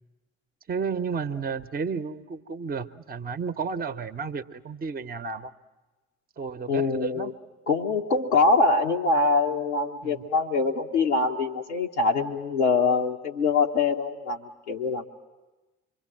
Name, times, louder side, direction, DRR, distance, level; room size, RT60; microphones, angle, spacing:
voice 1, 0.7-5.5 6.4-7.4 10.0-10.2, right 5 dB, 25° right, 11 dB, 0.8 m, -32 dB
voice 2, 6.7-7.3 7.7-15.0, left 3 dB, 90° left, -3 dB, 0.8 m, -24 dB
26.0 x 23.5 x 7.6 m, 1.2 s
figure-of-eight pair, 45°, 33 cm